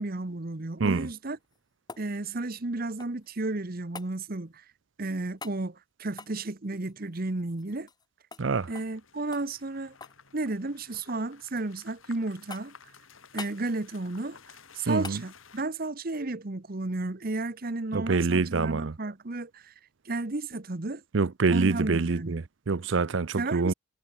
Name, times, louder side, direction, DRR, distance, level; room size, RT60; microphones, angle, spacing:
voice 1, 0.0-1.4 2.0-4.6 5.0-7.9 8.7-9.9 10.3-12.7 13.3-14.4 14.7-19.7 20.0-21.0 21.5-22.4 23.4-23.7, right 2 dB, 45° right, 1.1 m, -33 dB
sound 1, 1.3-3.3 3.9-4.1 5.4-5.6 6.1-8.1 8.3-8.5 8.7-9.0 9.3-10.2 10.5-11.1 11.6-12.1 12.5-12.9 13.4-13.6 15.0-15.2 17.6-17.7, left 4 dB, 20° left, 1.8 m, -45 dB
voice 2, 8.4-8.7 14.9-15.2 17.9-19.0 21.1-23.7, right 4 dB, 65° right, 0.6 m, -26 dB
sound 2, 8.6-15.6, left 6 dB, 80° left, 3.0 m, -54 dB
head